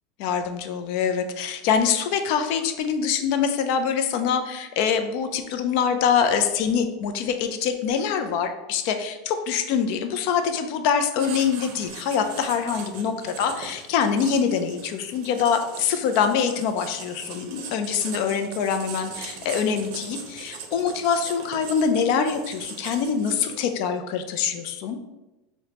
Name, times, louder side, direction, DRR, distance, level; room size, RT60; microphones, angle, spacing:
voice 1, 0.2-25.0, left 7 dB, 55° left, 8 dB, 0.4 m, -24 dB
Writing, 11.2-23.8, right 5 dB, 60° right, 0.5 m, -40 dB
4.8 x 2.1 x 2.8 m, 1.0 s
supercardioid pair, 165°, 0 cm